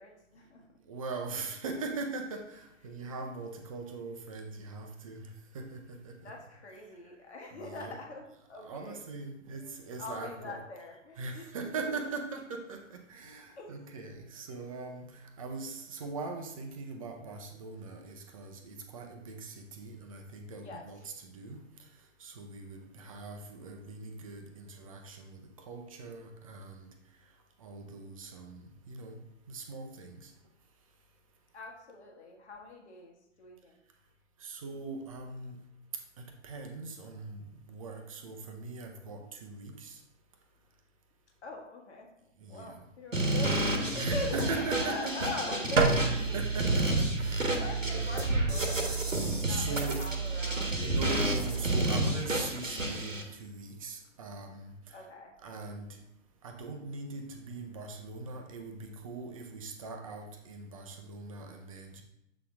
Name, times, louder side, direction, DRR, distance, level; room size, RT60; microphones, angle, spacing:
voice 1, 0.0-0.7 2.9-3.0 6.2-9.0 9.5-9.7 10.0-11.6 11.9-12.0 13.5-14.1 20.6-20.9 31.5-33.8 41.4-42.1 42.5-46.4 47.4-50.8 54.9-55.3, left 2 dB, 60° left, 1 dB, 1.4 m, -42 dB
voice 2, 0.8-6.3 7.5-8.0 8.5-10.6 11.2-29.2 29.5-30.3 34.4-35.6 35.9-40.0 42.4-42.8 43.8-45.5 45.9-46.1 46.3-48.1 49.5-50.0 50.8-55.1 55.4-56.0 56.4-62.0, right 3 dB, 30° right, 4 dB, 0.6 m, -41 dB
sound 1, 43.1-53.2, right 1 dB, 85° right, 1.3 m, -31 dB
sound 2, 45.8-52.0, right 4 dB, 70° right, 0.9 m, -32 dB
7.4 x 4.1 x 3.6 m, 0.82 s
figure-of-eight pair, 125°, 38 cm